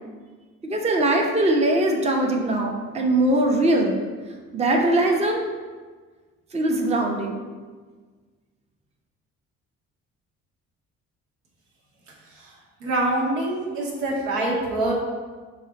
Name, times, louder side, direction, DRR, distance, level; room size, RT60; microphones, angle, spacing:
voice 1, 0.6-4.0 4.5-5.4 6.5-7.4, right 1 dB, 15° right, 1 dB, 0.6 m, -21 dB
voice 2, 12.8-14.9, right 2 dB, 75° right, -2 dB, 0.8 m, -25 dB
4.0 x 2.4 x 3.9 m, 1.4 s
figure-of-eight pair, 45°, 40 cm